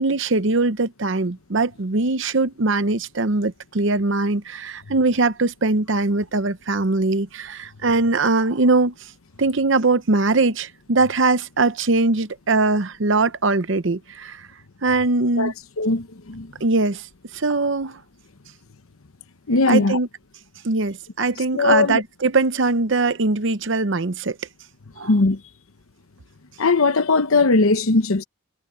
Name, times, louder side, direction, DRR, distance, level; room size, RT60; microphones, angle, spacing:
voice 1, 0.0-8.9 9.4-14.5 14.8-15.5 16.6-17.1 17.3-18.0 19.7-20.1 20.6-24.4 25.0-25.1, right 3 dB, 60° right, 0.8 m, -21 dB
voice 2, 15.3-16.5 19.5-20.0 21.5-22.0 25.0-25.4 26.6-28.2, left 3 dB, 85° left, 1.0 m, -19 dB
head